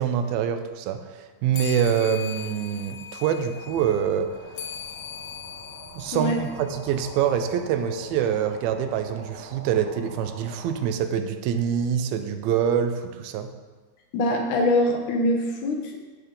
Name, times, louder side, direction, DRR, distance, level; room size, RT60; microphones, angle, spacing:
voice 1, 0.0-4.3 5.9-13.5, right 8 dB, 80° right, 8 dB, 2.4 m, -25 dB
sound 1, 1.5-7.4, left 8 dB, 85° left, 2.9 m, -40 dB
sound 2, 3.7-10.9, right 2 dB, 55° right, 2.1 m, -44 dB
voice 2, 14.1-16.1, left 1 dB, 70° left, 2 dB, 2.1 m, -23 dB
11.0 x 7.9 x 3.8 m, 1.3 s
omnidirectional pair, 4.4 m